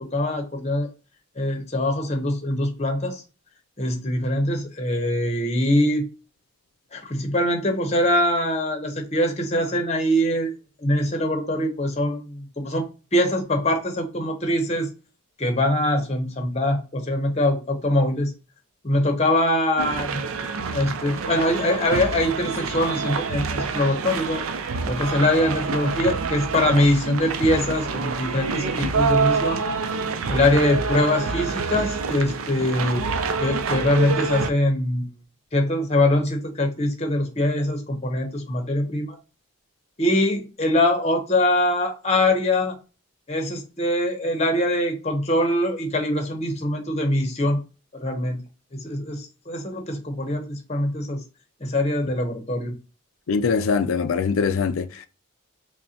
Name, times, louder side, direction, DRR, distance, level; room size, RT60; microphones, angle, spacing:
voice 1, 0.1-0.9 1.4-3.2 3.8-6.0 6.9-10.5 10.8-14.9 15.4-18.3 18.8-20.2 20.7-24.4 24.9-29.6 30.3-33.0 33.4-35.1 35.5-39.2 40.0-42.8 43.3-47.6 47.9-48.4 48.7-51.2 51.6-52.7, left 1 dB, 30° left, 0.8 m, -23 dB
sound 1, 19.8-34.5, right 4 dB, 80° right, 0.5 m, -27 dB
voice 2, 53.3-55.1, left 5 dB, 80° left, 0.4 m, -23 dB
5.3 x 2.1 x 2.8 m
head